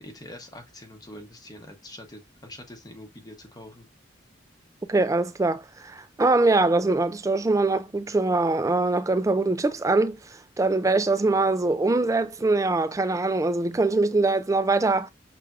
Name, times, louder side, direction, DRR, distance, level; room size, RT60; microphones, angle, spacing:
voice 1, 0.0-3.9, left 1 dB, 20° left, 0.9 m, -44 dB
voice 2, 4.9-10.2 10.6-15.1, right 3 dB, 15° right, 0.3 m, -23 dB
5.8 x 3.3 x 2.4 m
head